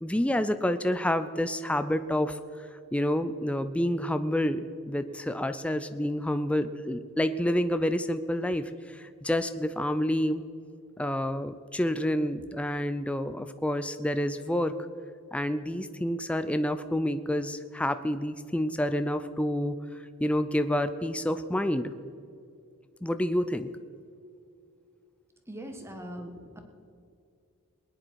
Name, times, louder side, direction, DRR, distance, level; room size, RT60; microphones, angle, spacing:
voice 1, 0.0-10.4 11.0-14.8 15.3-21.9 23.0-23.7, left 1 dB, 5° left, 10 dB, 0.4 m, -29 dB
voice 2, 25.5-26.6, equal, 10° right, 5 dB, 1.5 m, -41 dB
20.5 x 10.0 x 4.7 m, 2.5 s
head